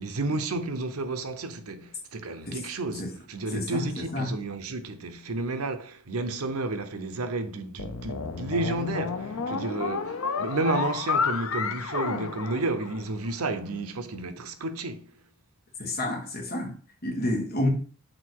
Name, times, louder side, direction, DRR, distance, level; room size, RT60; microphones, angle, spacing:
voice 1, 0.0-15.0, right 2 dB, 80° right, 0.7 m, -31 dB
voice 2, 3.5-3.9 4.1-4.3 15.8-16.7 17.0-17.7, left 1 dB, 45° left, 1.8 m, -29 dB
sound 1, 7.8-13.3, left 5 dB, 70° left, 0.6 m, -31 dB
6.6 x 3.9 x 4.6 m
head